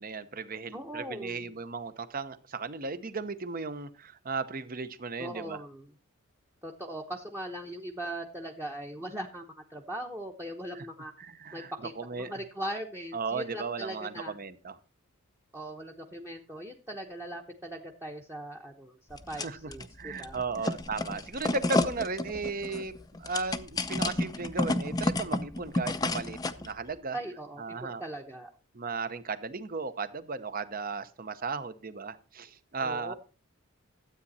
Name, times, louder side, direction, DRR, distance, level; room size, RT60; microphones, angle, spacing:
voice 1, 0.0-5.6 10.7-10.9 11.2-12.4 13.1-14.8 19.3-19.7 20.0-27.2 27.6-28.0 28.7-33.1, right 4 dB, 40° right, 13 dB, 0.8 m, -36 dB
voice 2, 0.7-1.5 5.2-5.9 6.6-11.1 11.5-14.4 15.5-20.7 27.1-28.5 32.8-33.1, right 1 dB, 10° right, 2 dB, 1.0 m, -40 dB
sound 1, 19.1-19.9 20.2-26.7, left 2 dB, 15° left, 0.6 m, -31 dB
12.5 x 8.4 x 4.2 m, 0.34 s
head